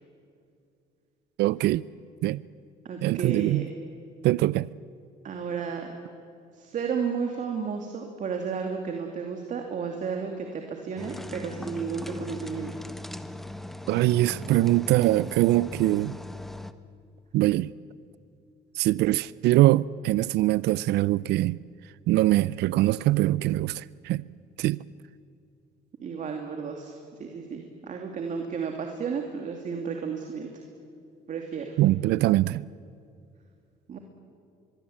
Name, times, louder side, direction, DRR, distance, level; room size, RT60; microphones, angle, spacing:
voice 1, 1.4-1.8 2.2-2.4 3.0-3.7 4.2-4.7 13.9-16.2 17.3-17.7 18.8-21.6 22.1-24.2 24.6-24.8 31.8-32.6, right 16 dB, 80° right, 0.5 m, -23 dB
voice 2, 2.8-3.7 5.2-5.9 6.5-12.8 26.0-30.5 31.3-31.8 33.9-34.0, right 6 dB, 50° right, 2.6 m, -33 dB
sound 1, 11.0-16.7, left 1 dB, ahead, 1.0 m, -39 dB
23.5 x 23.0 x 8.7 m
cardioid pair, 110°, 17 cm